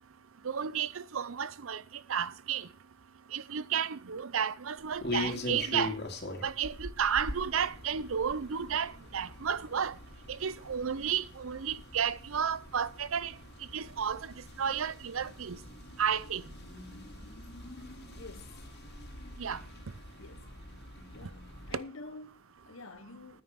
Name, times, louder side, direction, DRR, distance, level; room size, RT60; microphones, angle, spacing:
voice 1, 0.4-1.8 2.1-2.7 3.3-5.9 6.4-10.0 10.3-13.3 13.7-15.6 16.0-16.4 19.4-19.6, right 7 dB, 80° right, 0.6 m, -32 dB
sound 1, 4.8-21.8, left 2 dB, 55° left, 2.5 m, -43 dB
voice 2, 17.4-18.6 20.2-20.6 21.1-23.4, left 3 dB, 75° left, 1.3 m, -49 dB
9.5 x 9.5 x 5.9 m
head